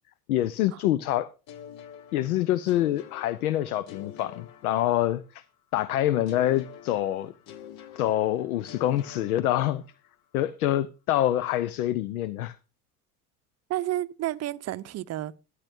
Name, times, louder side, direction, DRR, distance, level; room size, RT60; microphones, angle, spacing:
voice 1, 0.3-1.3 2.1-5.4 5.7-7.3 8.0-9.8 10.3-12.6, left 13 dB, 65° left, 0.7 m, -26 dB
sound 1, 1.5-5.4 6.3-10.1, left 9 dB, 45° left, 1.1 m, -47 dB
voice 2, 13.7-15.4, right 15 dB, 35° right, 0.7 m, -31 dB
13.0 x 11.5 x 2.6 m
figure-of-eight pair, 65°, 47 cm